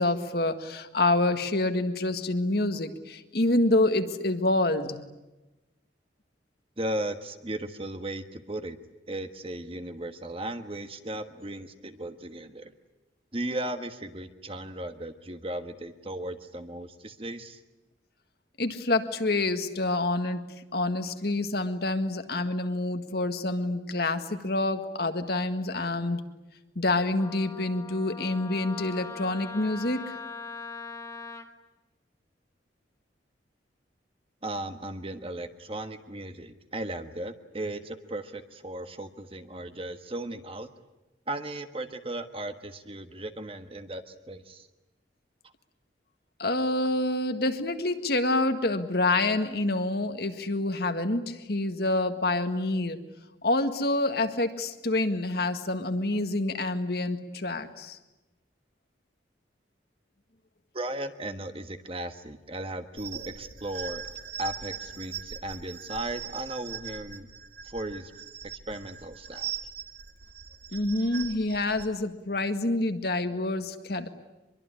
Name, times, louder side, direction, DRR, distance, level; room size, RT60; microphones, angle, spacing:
voice 1, 0.0-5.0 18.6-20.5 20.7-26.2 26.8-30.2 46.4-53.0 53.4-58.0 70.7-74.1, left 2 dB, 55° left, 8 dB, 1.8 m, -27 dB
voice 2, 6.8-8.8 9.1-12.7 13.3-17.6 34.4-40.7 41.3-44.7 60.7-64.1 64.4-67.3 67.6-68.1 68.7-69.6, right 1 dB, 30° right, 8 dB, 1.4 m, -36 dB
Wind instrument woodwind instrument, 27.2-31.5, left 4 dB, 15° left, 1.4 m, -41 dB
sound 1, 63.0-71.9, right 8 dB, 60° right, 1.7 m, -40 dB
24.5 x 23.0 x 9.9 m, 1.0 s
head